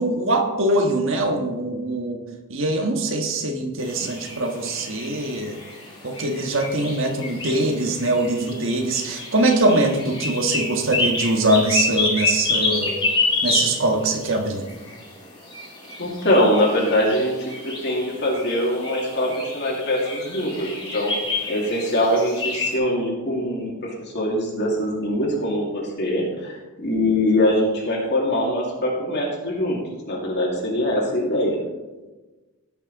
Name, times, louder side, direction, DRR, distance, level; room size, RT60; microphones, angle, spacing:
voice 1, 0.0-2.2 2.5-5.6 6.0-13.0 13.4-14.6, right 1 dB, 60° right, 3 dB, 1.5 m, -22 dB
sound 1, 3.8-22.7, left 3 dB, 20° left, 2.8 m, -29 dB
voice 2, 16.0-21.1 21.5-29.8 30.1-31.6, left 1 dB, 50° left, -3 dB, 2.4 m, -23 dB
17.5 x 6.2 x 4.1 m, 1.2 s
head